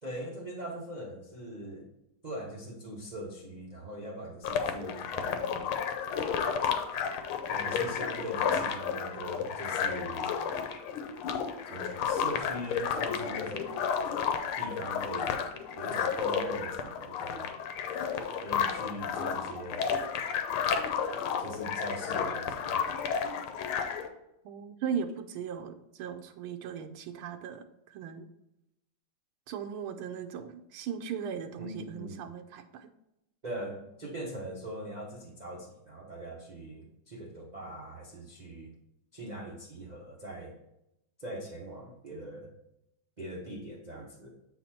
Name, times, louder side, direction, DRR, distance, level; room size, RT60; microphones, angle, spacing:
voice 1, 0.0-1.9 2.2-5.8 7.5-10.3 11.7-13.8 14.6-15.5 15.8-17.5 18.4-19.9 21.4-22.8 31.6-32.2 33.4-38.7 39.1-40.5 41.2-42.5 43.2-44.3, right 1 dB, 50° right, -2 dB, 0.5 m, -41 dB
sound 1, 4.4-24.1, left 7 dB, 90° left, 1.6 m, -32 dB
voice 2, 24.4-27.6 27.9-28.3 29.5-32.9, right 7 dB, 85° right, 7 dB, 1.5 m, -38 dB
7.9 x 4.3 x 4.2 m, 0.85 s
omnidirectional pair, 2.3 m